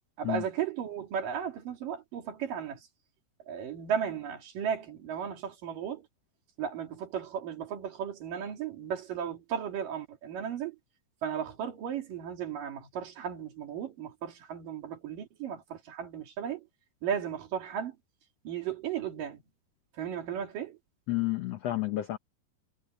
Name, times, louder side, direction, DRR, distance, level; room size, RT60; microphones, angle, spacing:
voice 1, 0.2-2.9 3.5-6.1 6.6-10.8 11.2-16.7 17.0-18.0 18.4-19.4 19.9-20.8, right 8 dB, 65° right, 4.2 m, -35 dB
voice 2, 21.1-22.2, left 16 dB, 85° left, 1.4 m, -30 dB
omnidirectional pair, 4.2 m